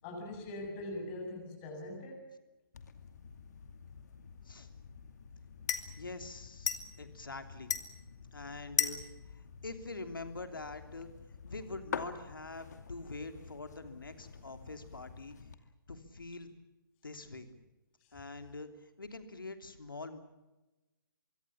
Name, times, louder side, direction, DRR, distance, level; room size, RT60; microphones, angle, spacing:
voice 1, 0.0-2.3, left 1 dB, 25° left, 2 dB, 7.4 m, -42 dB
sound 1, 2.7-15.5, left 7 dB, 50° left, 2.4 m, -42 dB
voice 2, 6.0-8.0 8.3-9.0 9.3-11.1 11.4-15.5 15.9-16.5 17.0-17.6 18.1-20.2, left 3 dB, 70° left, 8 dB, 3.2 m, -45 dB
25.0 x 24.0 x 7.3 m, 1.1 s
figure-of-eight pair, 130°, 12 cm